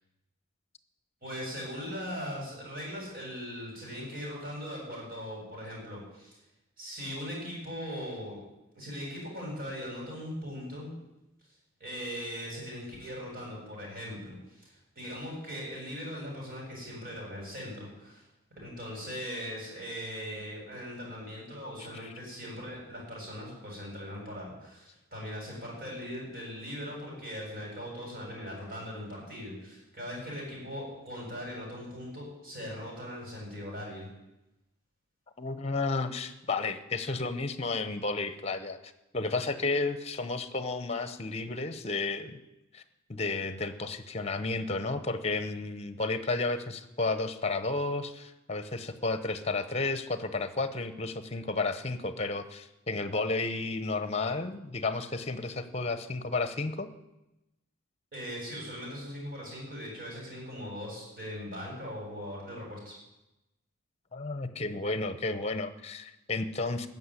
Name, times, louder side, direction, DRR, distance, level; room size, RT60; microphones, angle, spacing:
voice 1, 1.2-6.4 6.8-8.4 8.8-10.9 11.8-18.2 18.6-34.1 58.1-62.9, equal, 45° right, -2 dB, 7.4 m, -40 dB
voice 2, 35.4-38.8 39.1-42.4 42.7-42.8 43.1-56.9 64.1-66.9, left 3 dB, 30° left, 11 dB, 1.0 m, -32 dB
14.5 x 7.1 x 9.9 m, 0.94 s
head